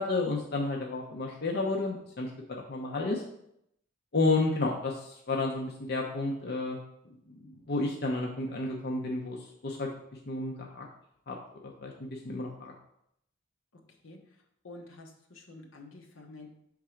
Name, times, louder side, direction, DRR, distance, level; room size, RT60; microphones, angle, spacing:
voice 1, 0.0-3.2 4.1-6.8 7.3-9.9 10.3-10.8 11.3-11.4 11.8-12.7, left 2 dB, 55° left, 0 dB, 0.7 m, -31 dB
voice 2, 14.6-16.5, left 2 dB, 75° left, 2 dB, 1.0 m, -48 dB
5.9 x 3.7 x 4.4 m, 0.75 s
head